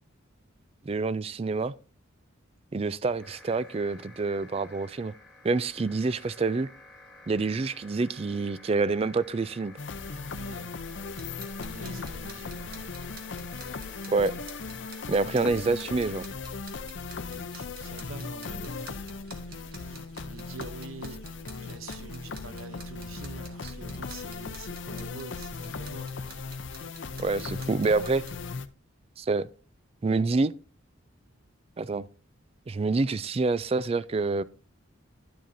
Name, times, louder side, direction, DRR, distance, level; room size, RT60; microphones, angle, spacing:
voice 1, 0.9-1.7 2.7-5.1 5.4-6.7 7.3-9.7 14.1-14.4 15.1-16.2 27.2-28.2 29.2-29.5 30.0-30.5 31.8-32.1 32.7-34.4, right 3 dB, 30° right, 0.3 m, -27 dB
sound 1, 3.2-16.3, left 2 dB, ahead, 2.2 m, -51 dB
sound 2, 9.8-28.7, left 4 dB, 60° left, 0.6 m, -38 dB
voice 2, 10.2-10.8 11.6-12.8 17.4-19.0 19.3-26.4, right 3 dB, 85° right, 0.8 m, -46 dB
sound 3, 11.0-28.5, right 3 dB, 45° right, 1.7 m, -50 dB
11.5 x 7.5 x 2.7 m
head